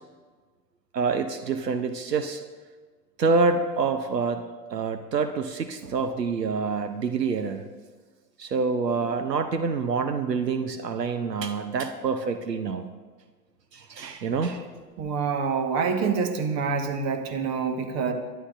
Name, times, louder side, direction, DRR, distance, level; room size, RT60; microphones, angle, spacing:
voice 1, 0.9-2.4 3.2-4.4 4.7-7.6 8.4-12.9 13.7-14.6, right 4 dB, 75° right, 8 dB, 0.9 m, -26 dB
voice 2, 15.0-18.1, right 5 dB, 30° right, 6 dB, 1.5 m, -26 dB
22.0 x 11.5 x 2.6 m, 1.4 s
figure-of-eight pair, 90°, 49 cm